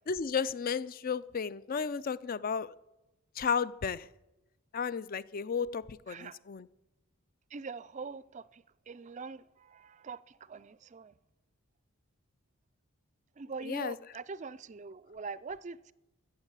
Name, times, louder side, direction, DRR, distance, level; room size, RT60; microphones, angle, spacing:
voice 1, 0.1-2.7 3.4-4.1 4.7-6.7 13.6-14.0, left 6 dB, 40° left, 0.4 m, -33 dB
voice 2, 6.1-6.4 7.5-11.1 13.4-15.9, right 4 dB, 30° right, 0.4 m, -43 dB
14.5 x 8.0 x 8.2 m
head